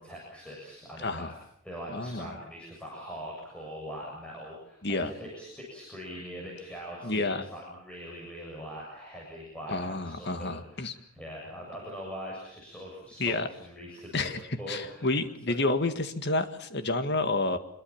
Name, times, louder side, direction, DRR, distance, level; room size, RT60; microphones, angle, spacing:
voice 1, 0.0-1.4 1.6-14.3 14.6-15.1 15.5-15.6, equal, 5° left, -4 dB, 7.2 m, -42 dB
voice 2, 1.0-1.3 1.9-2.4 4.8-5.1 7.0-7.4 9.7-10.9 13.2-13.5 14.1-14.4 14.7-17.6, left 2 dB, 50° left, 9 dB, 1.9 m, -29 dB
25.5 x 22.5 x 7.3 m, 0.71 s
head